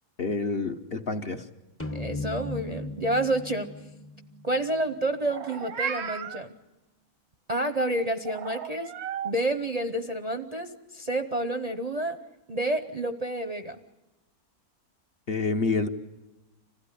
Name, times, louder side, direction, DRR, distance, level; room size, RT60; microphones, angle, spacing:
voice 1, 0.2-1.4 15.3-15.9, left 3 dB, 45° left, 5 dB, 1.1 m, -28 dB
sound 1, 1.8-5.3, left 2 dB, 10° left, 0.7 m, -38 dB
voice 2, 1.9-3.7 4.4-6.5 7.5-8.9 9.2-12.2 12.5-13.8, right 1 dB, 35° right, 7 dB, 0.8 m, -29 dB
Meow, 5.2-6.4 8.3-9.3, right 7 dB, 85° right, 1.6 m, -34 dB
26.5 x 16.0 x 9.9 m, 1.0 s
omnidirectional pair, 1.6 m